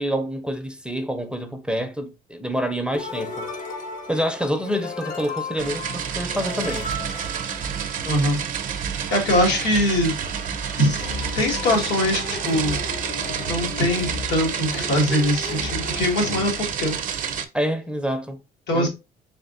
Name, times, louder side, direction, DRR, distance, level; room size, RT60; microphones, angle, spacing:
voice 1, 0.0-3.5 4.1-6.9 17.5-18.4 18.7-18.9, equal, 5° right, 0.5 m, -27 dB
sound 1, 2.9-8.4, left 2 dB, 50° left, 0.8 m, -35 dB
sound 2, 5.6-17.4, right 7 dB, 50° right, 0.6 m, -29 dB
voice 2, 8.0-8.4 8.8-10.1 10.8-11.1 11.3-12.8 13.5-17.0 18.7-18.9, left 1 dB, 90° left, 1.4 m, -22 dB
sound 3, 9.3-16.5, left 2 dB, 70° left, 1.4 m, -35 dB
3.6 x 3.5 x 2.4 m
cardioid pair, 110°, 17 cm